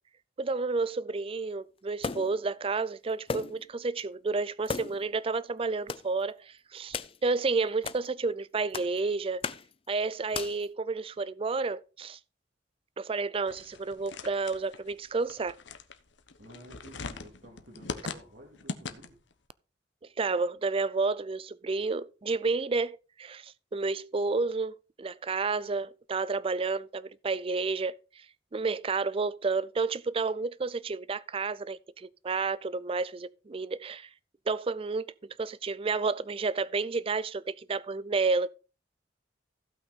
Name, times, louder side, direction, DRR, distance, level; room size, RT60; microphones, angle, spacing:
voice 1, 0.4-9.4 9.9-12.2 13.0-15.5 20.2-28.0 28.5-34.1 34.5-35.1 35.4-38.5, right 4 dB, 30° right, 0.4 m, -31 dB
sound 1, 2.0-2.4 3.3-3.7 4.0-4.1 4.6-5.1 5.9-6.1 6.9-7.2 7.8-8.0 8.7-9.0 9.4-9.7 10.3-10.7, left 5 dB, 30° left, 0.5 m, -36 dB
sound 2, 13.5-19.3, left 4 dB, 75° left, 1.1 m, -41 dB
voice 2, 16.4-19.2, right 1 dB, 60° right, 2.4 m, -52 dB
15.5 x 5.9 x 4.1 m
head